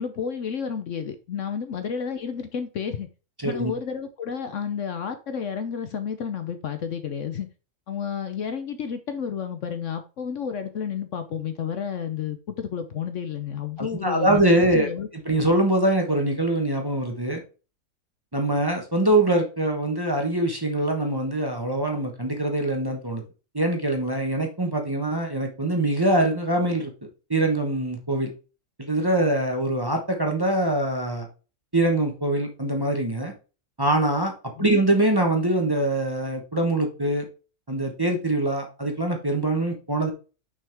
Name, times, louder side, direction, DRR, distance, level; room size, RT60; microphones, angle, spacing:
voice 1, 0.0-3.1 3.4-7.5 7.9-14.4 14.7-15.1 34.6-34.8, left 7 dB, 60° left, 1.0 m, -31 dB
voice 2, 3.4-3.7 13.8-14.9 15.2-17.4 18.3-23.2 23.5-26.9 27.3-28.3 28.8-31.3 31.7-33.3 33.8-34.3 34.6-37.2 37.7-40.1, right 1 dB, 15° right, 1.2 m, -23 dB
6.1 x 5.6 x 3.5 m
omnidirectional pair, 1.6 m